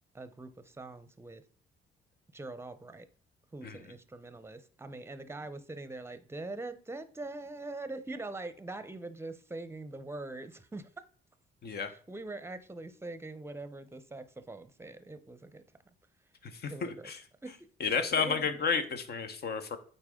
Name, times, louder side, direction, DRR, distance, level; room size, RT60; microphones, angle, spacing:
voice 1, 0.1-1.4 2.3-3.1 3.5-10.9 11.9-15.6 16.7-17.1 17.4-17.6 18.2-18.5, right 2 dB, 10° right, 0.7 m, -43 dB
voice 2, 11.6-11.9 16.5-17.2 17.8-19.8, left 6 dB, 55° left, 1.0 m, -31 dB
8.8 x 4.1 x 3.7 m
cardioid pair, 90°, 20 cm